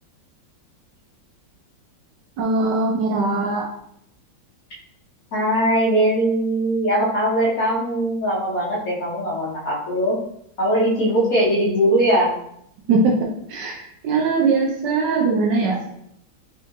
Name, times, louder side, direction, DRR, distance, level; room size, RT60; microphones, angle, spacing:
voice 1, 2.4-3.7 12.9-15.8, right 3 dB, 70° right, 0 dB, 1.2 m, -21 dB
voice 2, 5.3-10.2 10.6-12.3, right 1 dB, 50° left, -6 dB, 1.3 m, -20 dB
3.6 x 3.6 x 2.6 m, 0.72 s
omnidirectional pair, 2.1 m